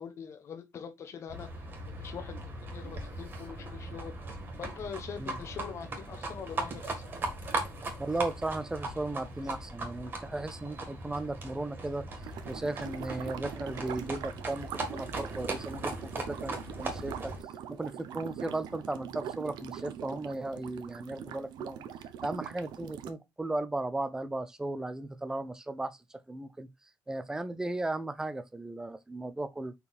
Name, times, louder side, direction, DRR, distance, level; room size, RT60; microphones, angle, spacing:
voice 1, 0.0-1.5 1.9-4.1 4.6-7.1, left 7 dB, 40° left, 1.1 m, -43 dB
Livestock farm animals working animals, 1.3-17.4, right 2 dB, 30° right, 1.8 m, -39 dB
voice 2, 8.0-12.0 12.5-17.3 17.7-21.8 22.2-26.7 27.1-29.7, right 2 dB, 10° right, 0.5 m, -36 dB
sound 1, 12.2-23.1, right 9 dB, 80° right, 0.9 m, -42 dB
5.2 x 4.7 x 4.2 m
cardioid pair, 180°, 7 cm